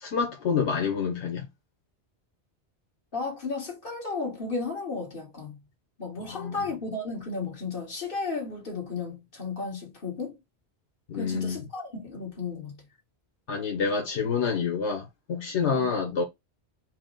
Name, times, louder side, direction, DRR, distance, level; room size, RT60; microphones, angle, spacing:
voice 1, 0.0-1.4 6.3-6.6 11.1-11.6 13.5-16.2, left 5 dB, 80° left, 1.3 m, -28 dB
voice 2, 3.1-5.6 6.0-10.4 11.1-12.9 15.8-15.9, left 4 dB, 50° left, 1.8 m, -34 dB
4.7 x 2.1 x 3.7 m
omnidirectional pair, 1.1 m